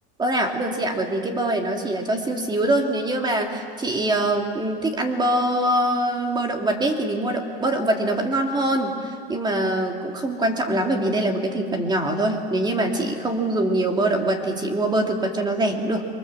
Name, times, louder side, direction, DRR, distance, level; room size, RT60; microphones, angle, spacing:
voice 1, 0.2-16.1, right 1 dB, 15° right, 3 dB, 2.9 m, -23 dB
30.0 x 24.5 x 7.7 m, 2.2 s
supercardioid pair, 135°, 30 cm